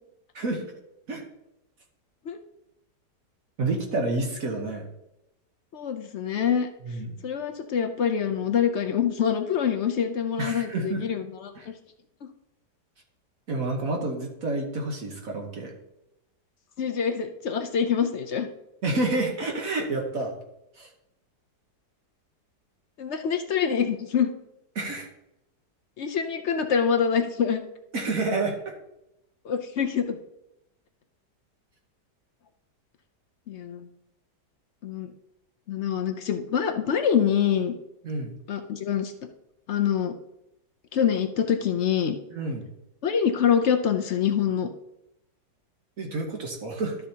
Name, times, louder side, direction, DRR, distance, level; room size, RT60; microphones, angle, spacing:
voice 1, 3.6-4.9 6.8-7.1 10.4-11.0 11.6-11.7 13.5-15.7 18.8-20.3 20.8-20.9 24.7-25.1 27.9-28.7 38.0-38.3 42.3-42.7 46.0-47.0, right 2 dB, 55° right, 1 dB, 1.5 m, -29 dB
voice 2, 5.7-6.7 7.2-11.5 16.8-18.5 23.0-24.3 26.0-27.6 29.4-30.2 33.5-33.9 34.8-35.1 35.7-37.7 38.5-39.1 39.7-40.1 40.9-42.2 43.0-44.7, left 8 dB, 65° left, 6 dB, 0.7 m, -25 dB
12.0 x 6.6 x 2.8 m, 0.87 s
omnidirectional pair, 1.9 m